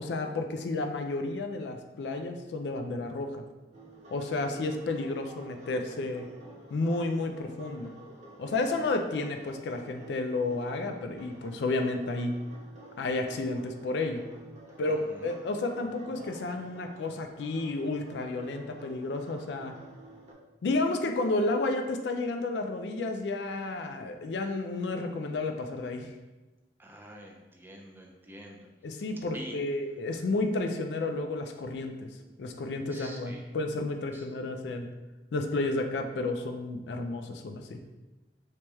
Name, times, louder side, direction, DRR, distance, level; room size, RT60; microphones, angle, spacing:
voice 1, 0.0-3.4 4.1-6.3 6.7-7.9 8.4-12.3 13.0-14.2 14.8-19.7 20.6-26.1 28.8-32.1 32.4-34.9 35.3-37.8, left 2 dB, 70° left, 5 dB, 0.4 m, -31 dB
sound 1, 3.7-20.3, right 2 dB, 40° right, 0.8 m, -50 dB
voice 2, 4.4-5.1 14.9-15.3 26.8-28.7 29.0-29.6 30.3-30.5 32.9-33.5 34.1-34.2, equal, 10° right, 0 dB, 0.4 m, -48 dB
3.0 x 2.9 x 3.4 m, 1.1 s
head